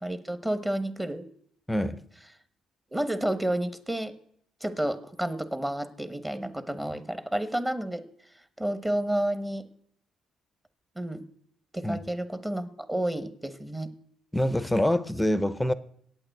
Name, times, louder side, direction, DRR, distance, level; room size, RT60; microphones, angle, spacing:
voice 1, 0.0-1.2 2.9-4.1 4.6-8.1 8.6-9.6 11.0-11.2 11.7-13.9, right 1 dB, 10° right, 10 dB, 1.1 m, -30 dB
voice 2, 1.7-2.0 11.8-12.0 14.3-15.7, left 1 dB, 5° left, 14 dB, 0.7 m, -25 dB
8.8 x 8.7 x 7.8 m, 0.67 s
cardioid pair, 85°, 0 cm